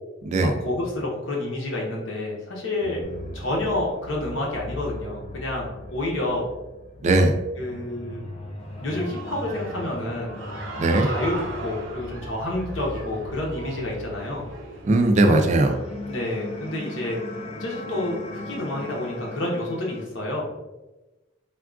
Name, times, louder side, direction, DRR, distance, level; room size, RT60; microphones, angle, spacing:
voice 1, 0.4-3.0 3.3-6.5 7.6-8.2 8.8-10.4 10.9-14.4 16.1-17.2 17.6-20.5, left 1 dB, 80° left, -2 dB, 0.8 m, -29 dB
sound 1, 3.0-20.0, left 1 dB, 30° left, 0.4 m, -39 dB
voice 2, 7.0-7.3 10.8-11.1 14.8-15.8, right 2 dB, 40° right, 5 dB, 0.3 m, -18 dB
Human voice / Cheering, 8.6-15.2, right 2 dB, 80° right, 0.6 m, -39 dB
3.5 x 2.3 x 2.4 m, 1.1 s
head